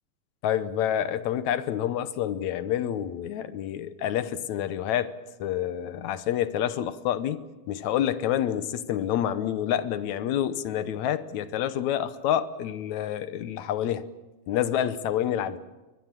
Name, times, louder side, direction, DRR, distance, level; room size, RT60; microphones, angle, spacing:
voice 1, 0.4-5.1 5.4-14.1 14.5-15.6, left 10 dB, 70° left, 1.9 m, -28 dB
23.0 x 21.5 x 7.5 m
omnidirectional pair, 4.0 m